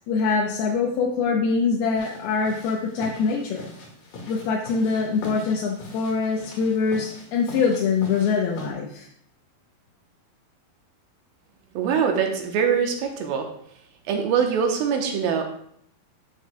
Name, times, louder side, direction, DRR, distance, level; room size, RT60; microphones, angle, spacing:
voice 1, 0.1-3.8 4.2-9.1, left 5 dB, 80° left, -2 dB, 2.8 m, -24 dB
sound 1, 2.0-8.7, left 2 dB, 60° left, 3.2 m, -41 dB
voice 2, 11.8-13.5 14.1-15.4, right 7 dB, 75° right, 3 dB, 2.7 m, -23 dB
12.0 x 6.5 x 2.3 m, 0.67 s
omnidirectional pair, 4.4 m